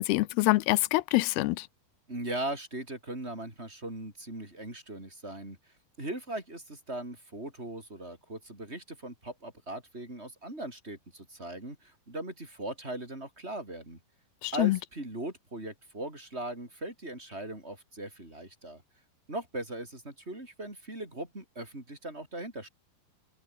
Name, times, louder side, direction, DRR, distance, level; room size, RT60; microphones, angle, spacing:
voice 1, 0.0-1.7 14.4-14.8, left 20 dB, 85° left, 2.7 m, -25 dB
voice 2, 2.1-5.6 6.0-14.0 14.5-18.8 19.3-22.7, right 1 dB, 15° right, 6.0 m, -39 dB
open air
omnidirectional pair, 4.5 m